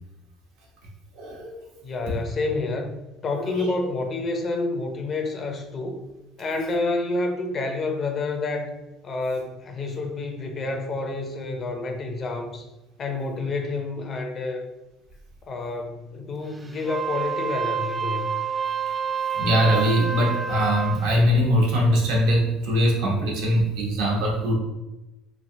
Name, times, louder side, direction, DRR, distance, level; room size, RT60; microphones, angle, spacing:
voice 1, 1.1-1.6 2.1-2.2 3.3-3.7 19.3-24.5, equal, 85° right, -3 dB, 1.0 m, -22 dB
voice 2, 1.8-3.0 3.2-6.0 6.4-8.7 9.0-12.6 13.0-14.6 15.5-18.3, left 3 dB, 40° left, 4 dB, 0.5 m, -29 dB
Wind instrument woodwind instrument, 16.8-21.1, right 6 dB, 20° right, 0.3 m, -28 dB
3.1 x 2.7 x 2.7 m, 1.0 s
supercardioid pair, 110°, 0 cm